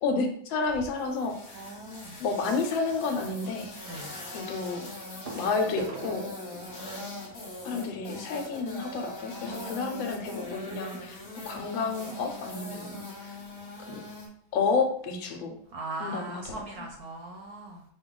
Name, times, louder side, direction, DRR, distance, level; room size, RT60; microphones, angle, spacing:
voice 1, 0.0-1.6 2.2-3.7 4.3-4.9 5.3-6.3 7.6-13.4 13.8-14.0 14.5-15.6 16.0-16.9, left 4 dB, 75° left, 4 dB, 1.4 m, -31 dB
sound 1, 0.6-14.3, left 2 dB, 35° left, 1.2 m, -42 dB
voice 2, 1.5-2.1 3.8-4.1 7.9-8.1 9.4-10.1 15.7-17.8, right 2 dB, 65° right, 0 dB, 1.0 m, -40 dB
sound 2, 1.7-2.0 3.6-3.7 5.2-9.7 10.4-10.5 10.7-10.9 11.4-11.5, right 3 dB, 80° right, 0.4 m, -44 dB
5.4 x 2.3 x 3.7 m, 0.63 s
omnidirectional pair, 2.2 m